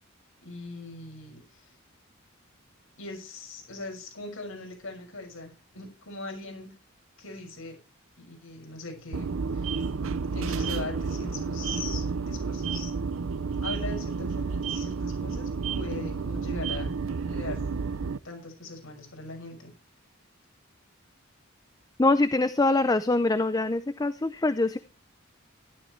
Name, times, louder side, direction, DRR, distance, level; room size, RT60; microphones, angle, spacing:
voice 1, 0.4-1.7 3.0-6.7 7.2-7.8 8.2-9.8 10.3-12.9 13.6-17.0 17.3-17.6 18.2-19.7, left 2 dB, 85° left, 2 dB, 6.3 m, -40 dB
sound 1, 9.1-18.2, right 5 dB, 75° right, 0.6 m, -31 dB
voice 2, 22.0-24.8, left 2 dB, 20° left, 12 dB, 0.5 m, -24 dB
14.0 x 12.0 x 3.2 m, 0.33 s
head